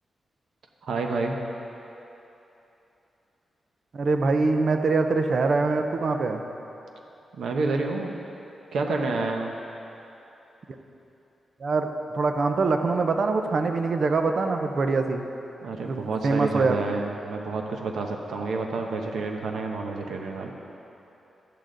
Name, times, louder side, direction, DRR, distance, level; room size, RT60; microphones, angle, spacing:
voice 1, 0.8-1.4 7.3-8.1 8.7-9.5 15.6-20.5, right 3 dB, 90° right, 2 dB, 0.9 m, -29 dB
voice 2, 3.9-6.4 11.6-11.9 12.1-15.2 15.8-16.8, right 3 dB, 50° right, 6 dB, 0.6 m, -24 dB
12.0 x 8.6 x 3.9 m, 3.0 s
wide cardioid pair, 130°, 0 cm